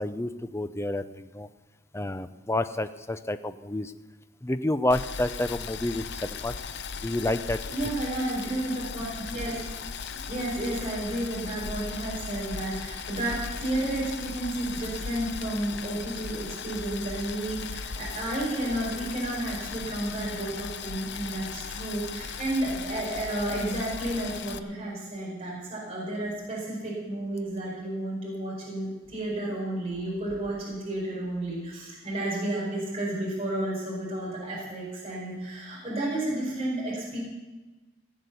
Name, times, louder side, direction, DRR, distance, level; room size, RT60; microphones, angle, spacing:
voice 1, 0.0-1.5 1.9-3.9 4.4-6.5 7.0-7.6, left 1 dB, 15° left, 11 dB, 0.5 m, -29 dB
Boiling, 4.9-24.6, left 5 dB, 55° left, 0.6 m, -37 dB
voice 2, 7.7-9.5 10.1-37.2, right 1 dB, 30° right, -5 dB, 4.6 m, -32 dB
17.5 x 8.1 x 6.9 m, 1.2 s
head